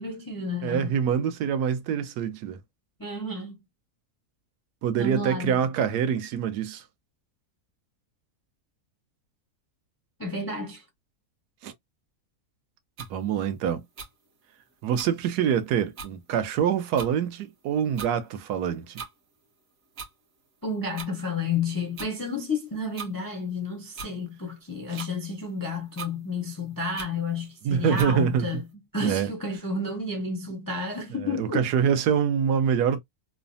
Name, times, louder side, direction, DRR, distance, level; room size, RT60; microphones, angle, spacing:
voice 1, 0.0-1.0 3.0-3.6 5.0-5.6 10.2-10.8 20.6-28.6 28.9-31.6, left 3 dB, 35° left, 0.3 m, -31 dB
voice 2, 0.6-2.6 4.8-6.8 11.6-11.7 13.1-13.8 14.8-19.0 24.9-25.0 27.6-28.6 29.0-29.3 31.2-33.0, right 8 dB, 90° right, 1.2 m, -25 dB
sound 1, 13.0-13.1 14.0-14.1 14.9-15.1 15.6-15.7 15.9-16.1 17.0-17.1 17.9-18.1 18.9-19.1 20.0-20.1 21.0-21.1 22.0-22.1 23.0-23.1 23.9-24.1 24.9-25.1 26.0-26.1 27.0-27.1 27.9-28.1, right 5 dB, 60° right, 1.2 m, -39 dB
3.2 x 2.0 x 2.5 m
omnidirectional pair, 1.7 m